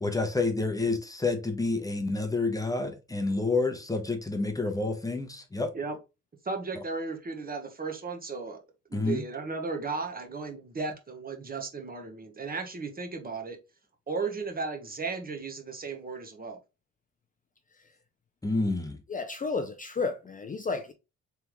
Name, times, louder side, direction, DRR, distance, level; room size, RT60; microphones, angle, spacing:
voice 1, 0.0-5.7 8.9-9.2 18.4-19.0, left 3 dB, 10° left, 0.9 m, -29 dB
voice 2, 6.4-8.6 8.9-13.6 14.1-16.6, right 4 dB, 30° right, 1.1 m, -35 dB
voice 3, 19.1-20.9, left 4 dB, 25° left, 0.5 m, -32 dB
3.5 x 3.4 x 3.0 m
cardioid pair, 90°, 30 cm